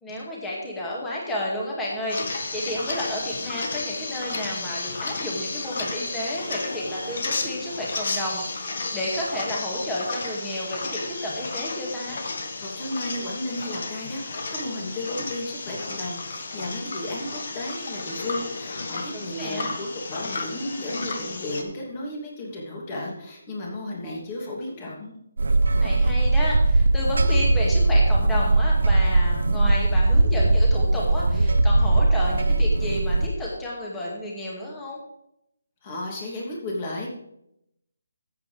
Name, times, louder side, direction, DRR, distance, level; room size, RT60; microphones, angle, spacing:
voice 1, 0.0-12.2 19.1-19.7 25.7-35.0, left 1 dB, 10° left, -4 dB, 2.1 m, -31 dB
sound 1, 2.1-21.6, left 3 dB, 55° left, 1.6 m, -33 dB
voice 2, 12.6-25.1 35.8-37.1, left 1 dB, 25° left, -2 dB, 2.9 m, -33 dB
sound 2, 25.4-33.3, right 2 dB, 70° right, 0.9 m, -20 dB
13.5 x 8.0 x 3.5 m, 0.79 s
figure-of-eight pair, 160°, 0 cm